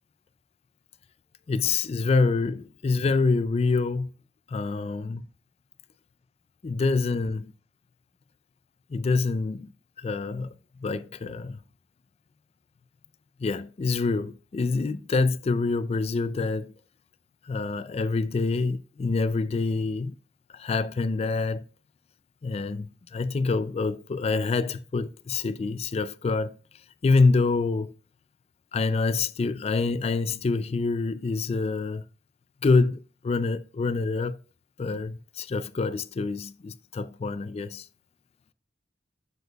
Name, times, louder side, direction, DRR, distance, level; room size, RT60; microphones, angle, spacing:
voice 1, 1.5-4.1 4.5-5.2 6.6-7.5 8.9-9.7 10.0-10.5 10.8-11.6 13.4-16.7 17.5-20.1 20.5-21.6 22.4-26.6 27.0-27.9 28.7-32.0 32.6-34.4 34.8-37.9, left 3 dB, 35° left, 0.3 m, -26 dB
7.9 x 6.9 x 2.3 m
head